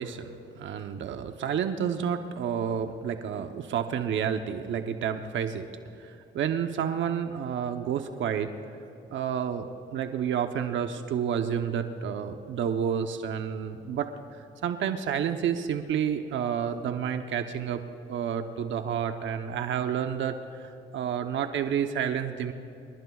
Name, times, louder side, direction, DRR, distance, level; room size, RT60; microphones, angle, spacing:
voice 1, 0.0-5.7 6.0-8.5 9.1-14.1 14.6-17.8 18.1-22.5, right 8 dB, 70° right, 7 dB, 0.9 m, -30 dB
28.5 x 19.5 x 2.4 m, 3.0 s
cardioid pair, 90°, 20 cm